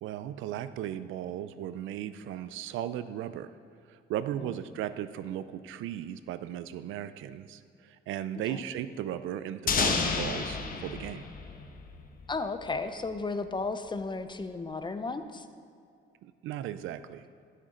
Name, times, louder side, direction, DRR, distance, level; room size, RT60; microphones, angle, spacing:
voice 1, 0.0-3.6 3.9-11.2 16.2-17.3, right 11 dB, 85° right, 13 dB, 0.4 m, -36 dB
sound 1, 9.7-12.4, left 5 dB, 45° left, 1.1 m, -30 dB
voice 2, 12.3-15.4, left 3 dB, 25° left, 9 dB, 0.7 m, -34 dB
12.5 x 7.7 x 3.8 m, 2.3 s
cardioid pair, 90°, 20 cm